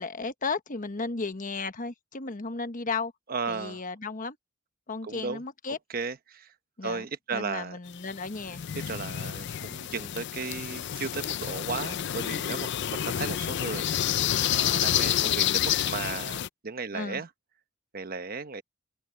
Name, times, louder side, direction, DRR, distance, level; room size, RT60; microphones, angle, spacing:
voice 1, 0.0-3.1 3.5-4.4 4.9-5.8 6.8-7.0 7.3-8.6 16.9-17.2, left 4 dB, 40° left, 1.2 m, -34 dB
voice 2, 3.3-3.8 5.0-5.4 5.9-6.5 6.8-7.8 8.9-17.3 17.9-18.6, right 4 dB, 45° right, 1.0 m, -35 dB
sound 1, 7.9-16.5, left 10 dB, 60° left, 0.5 m, -29 dB
head